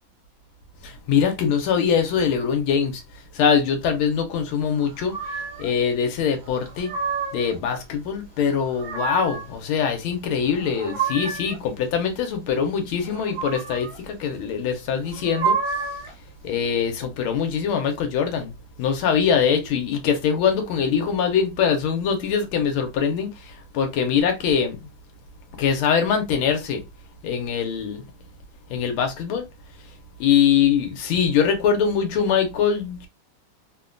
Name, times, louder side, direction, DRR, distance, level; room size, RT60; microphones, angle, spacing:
voice 1, 0.8-3.0 3.3-6.9 7.3-15.6 16.4-18.5 18.8-24.8 25.6-26.8 27.2-28.0 28.7-29.4 30.2-33.1, left 7 dB, 85° left, 1.5 m, -23 dB
sound 1, 5.1-5.7 6.5-7.5 8.5-9.5 10.4-11.6 13.1-14.0 15.1-16.1, right 5 dB, 70° right, 1.2 m, -29 dB
3.5 x 2.2 x 2.3 m
omnidirectional pair, 2.3 m